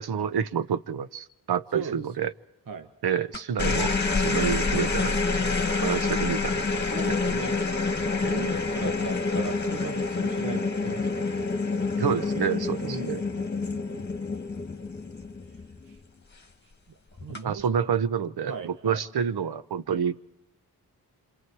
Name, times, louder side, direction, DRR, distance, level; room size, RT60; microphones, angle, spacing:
voice 1, 0.0-2.3 3.0-7.1 8.2-8.5 12.0-13.2 17.4-20.2, right 7 dB, 75° right, 13 dB, 1.0 m, -29 dB
voice 2, 1.7-2.3 2.7-2.9 6.6-7.6 8.0-11.5 12.8-14.0 15.5-15.6 15.9-16.0 16.6-16.7 17.2-17.7 18.5-19.0 19.9-20.0, right 6 dB, 55° right, 6 dB, 1.2 m, -38 dB
sound 1, 3.3-15.9 17.2-17.6, left 3 dB, 25° left, 1.7 m, -27 dB
28.0 x 27.0 x 4.7 m, 0.82 s
cardioid pair, 80°, 39 cm